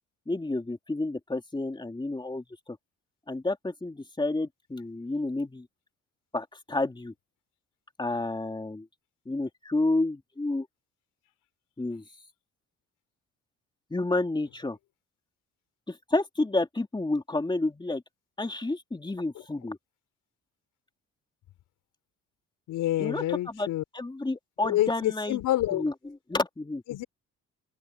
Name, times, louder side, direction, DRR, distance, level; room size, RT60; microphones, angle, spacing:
voice 1, 0.3-2.8 3.3-5.7 6.3-7.1 8.0-8.9 9.2-10.7 11.8-12.0 13.9-14.8 15.9-18.0 18.4-19.8 23.0-25.4 25.7-26.8, left 2 dB, 15° left, 2.9 m, -30 dB
voice 2, 22.7-23.8 24.6-25.9 26.9-27.0, left 14 dB, 90° left, 4.9 m, -27 dB
cardioid pair, 90°, 30 cm